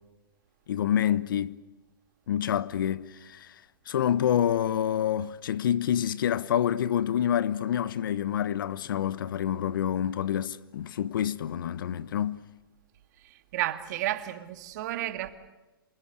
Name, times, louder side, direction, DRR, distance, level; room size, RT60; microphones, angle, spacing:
voice 1, 0.7-1.6 2.3-3.5 3.9-12.4, left 10 dB, 65° left, 1.1 m, -27 dB
voice 2, 13.5-15.3, right 14 dB, 50° right, 2.2 m, -31 dB
27.5 x 21.0 x 8.1 m
hypercardioid pair, 130°, 12 cm